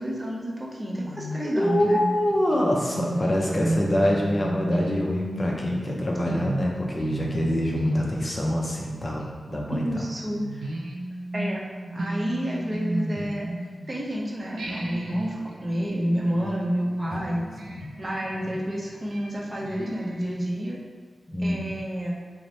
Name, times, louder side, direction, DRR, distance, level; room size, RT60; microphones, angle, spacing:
voice 1, 0.0-2.0 9.7-10.4 11.3-11.6 11.9-13.5 13.9-17.4 18.0-20.8 21.4-22.2, equal, 30° right, -4 dB, 0.6 m, -29 dB
sound 1, 1.0-14.1 14.6-20.5, right 1 dB, 85° right, 0.4 m, -34 dB
voice 2, 1.4-9.2 9.5-9.8 17.1-17.4 17.7-17.8 21.3-21.6, left 1 dB, 30° left, -2 dB, 0.5 m, -25 dB
3.2 x 2.1 x 3.9 m, 1.5 s
wide cardioid pair, 135°, 0 cm